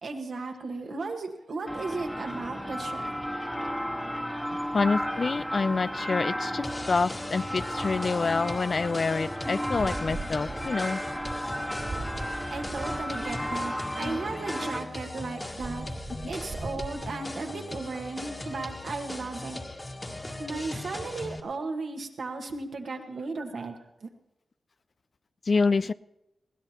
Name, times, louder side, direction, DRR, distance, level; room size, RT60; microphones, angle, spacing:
voice 1, 0.0-3.1 11.7-11.8 12.5-15.9 16.3-19.6 20.4-24.1, right 3 dB, 70° right, 3 dB, 1.7 m, -35 dB
sound 1, 1.7-14.8, equal, 5° left, 1.4 m, -34 dB
voice 2, 4.7-11.0 14.0-14.2 16.1-16.3 25.5-25.9, left 4 dB, 55° left, 16 dB, 0.4 m, -27 dB
sound 2, 6.6-21.4, left 1 dB, 30° left, 1.8 m, -39 dB
sound 3, 9.7-13.6 15.4-17.1, right 3 dB, 35° right, 0.7 m, -40 dB
21.0 x 16.0 x 3.0 m, 0.90 s
cardioid pair, 45°, 0 cm